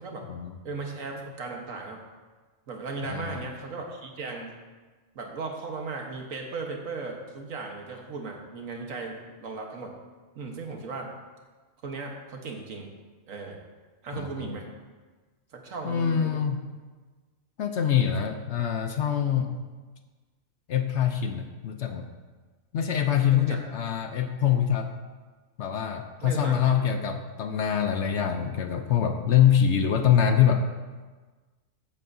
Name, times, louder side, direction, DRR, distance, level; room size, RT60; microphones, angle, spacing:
voice 1, 0.6-2.0 2.7-4.5 5.2-9.9 10.4-11.1 11.8-12.9 13.3-13.6 14.0-14.7 15.5-16.4 23.3-23.6 23.9-24.0 26.2-26.8 27.1-27.2, right 3 dB, 80° right, 1 dB, 1.7 m, -36 dB
voice 2, 3.1-3.5 14.1-14.5 15.8-16.7 17.6-19.7 20.7-22.1 22.7-24.9 25.6-30.6, left 9 dB, 65° left, 6 dB, 0.9 m, -24 dB
14.5 x 8.5 x 2.7 m, 1.3 s
omnidirectional pair, 1.4 m